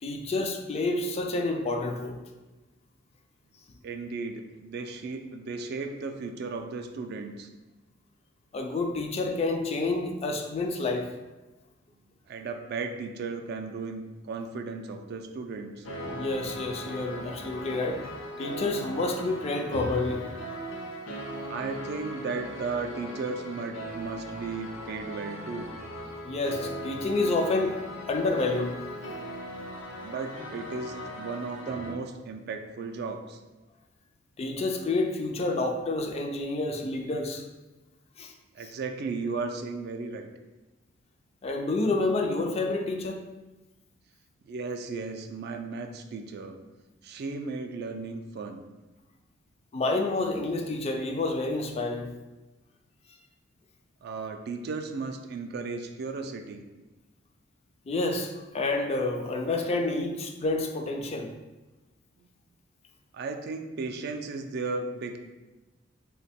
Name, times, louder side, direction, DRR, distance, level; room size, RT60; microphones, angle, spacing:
voice 1, 0.0-2.2 8.5-11.1 16.0-18.0 18.4-20.3 26.2-27.8 28.1-28.8 34.4-37.4 38.2-38.3 38.6-38.7 41.4-43.2 49.7-52.1 57.9-61.3, left 2 dB, 30° left, 3 dB, 0.3 m, -29 dB
voice 2, 3.8-7.5 12.3-15.9 21.5-25.7 30.0-33.4 38.5-40.3 44.4-46.6 47.0-48.6 54.0-56.6 62.2-62.3 63.1-65.2, right 4 dB, 55° right, 5 dB, 0.3 m, -35 dB
sound 1, 15.8-31.9, equal, 75° left, 0.6 m, -39 dB
2.9 x 2.2 x 4.1 m, 1.1 s
head